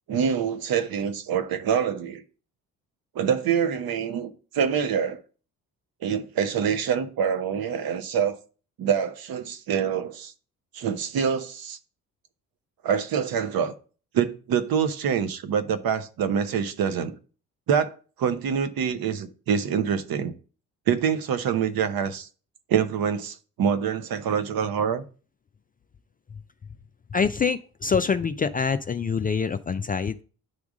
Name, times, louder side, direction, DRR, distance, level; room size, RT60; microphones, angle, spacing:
voice 1, 0.1-2.2 3.1-5.2 6.0-8.4 8.8-10.3 10.7-11.8 12.8-13.7 14.1-17.1 17.7-20.3 20.9-22.3 22.7-25.0, right 7 dB, 55° right, 0.9 m, -25 dB
voice 2, 27.1-30.2, left 5 dB, 20° left, 0.4 m, -25 dB
9.5 x 3.6 x 5.0 m
hypercardioid pair, 50°, 43 cm